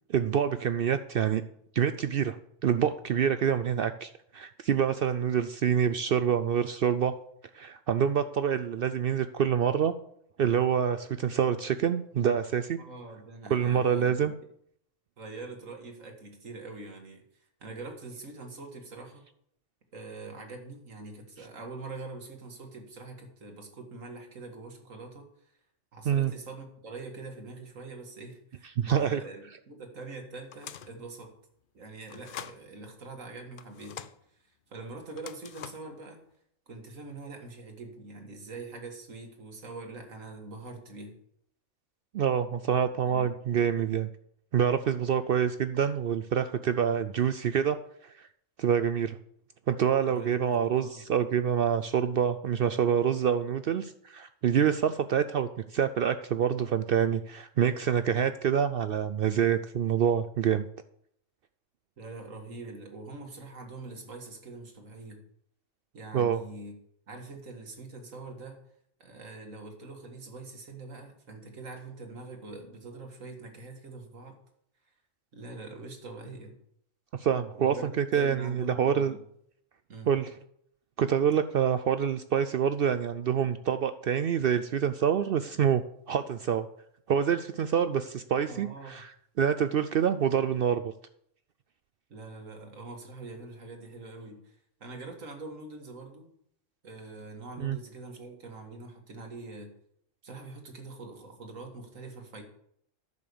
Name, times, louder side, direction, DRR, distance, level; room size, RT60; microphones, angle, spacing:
voice 1, 0.1-1.4 1.7-2.4 2.6-7.1 7.5-9.9 10.4-12.8 13.5-14.3 26.1-26.3 28.8-29.2 42.1-44.1 44.5-47.8 48.0-48.3 48.6-49.2 49.7-60.7 66.1-66.4 77.2-79.2 80.1-80.3 81.0-85.8 86.1-86.7 87.1-89.1 89.4-90.8 97.6-97.8, right 8 dB, 65° right, 10 dB, 0.6 m, -26 dB
voice 2, 12.8-14.3 15.2-17.2 17.6-19.3 19.9-25.3 25.9-31.3 31.7-34.1 34.7-36.2 36.7-41.2 43.1-43.3 50.1-51.1 62.0-65.2 65.9-66.7 67.1-68.6 69.0-74.4 75.3-76.5 77.5-79.2 79.9-80.1 88.5-89.1 92.1-94.5 94.8-96.3 96.8-99.7 100.2-102.4, right 3 dB, 85° right, 4 dB, 2.2 m, -44 dB
sound 1, 30.5-31.0 32.1-32.6 33.6-34.2 35.1-35.9, left 8 dB, 55° left, 0.6 m, -44 dB
10.5 x 6.7 x 6.9 m, 0.70 s
omnidirectional pair, 1.3 m